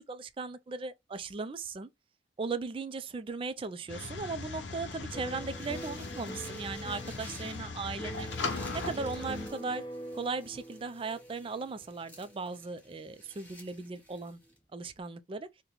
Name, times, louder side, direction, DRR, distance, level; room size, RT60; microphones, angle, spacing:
voice 1, 0.1-1.9 2.4-8.3 8.7-9.8 10.1-14.4 14.7-15.5, right 4 dB, 30° right, 0.3 m, -37 dB
sound 1, 3.9-9.5, left 4 dB, 85° left, 0.6 m, -39 dB
sound 2, 5.1-13.6 13.9-14.5, right 1 dB, 25° left, 0.9 m, -45 dB
sound 3, 5.1-14.6, left 1 dB, 10° left, 1.3 m, -55 dB
3.0 x 2.2 x 3.8 m
head